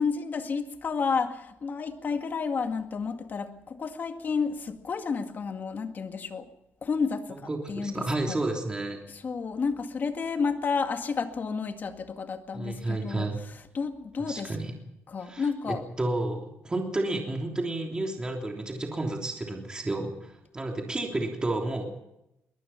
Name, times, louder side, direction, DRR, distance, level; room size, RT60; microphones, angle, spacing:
voice 1, 0.0-6.5 6.8-8.4 9.1-14.6 15.1-15.8, left 5 dB, 40° left, 6 dB, 2.0 m, -31 dB
voice 2, 7.3-9.0 12.5-13.4 14.3-14.7 15.2-15.5 16.0-21.9, right 2 dB, 15° right, 1 dB, 3.3 m, -31 dB
23.5 x 19.5 x 5.8 m, 0.87 s
cardioid pair, 130°, 5 cm